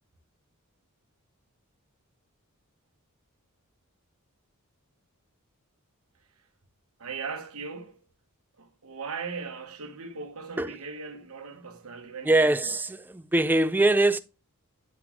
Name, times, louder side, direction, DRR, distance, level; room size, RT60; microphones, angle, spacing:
voice 1, 7.0-8.0 8.6-12.6, right 5 dB, 70° right, 1.0 m, -38 dB
voice 2, 12.2-14.2, right 2 dB, 10° right, 0.3 m, -23 dB
9.4 x 4.0 x 2.9 m
head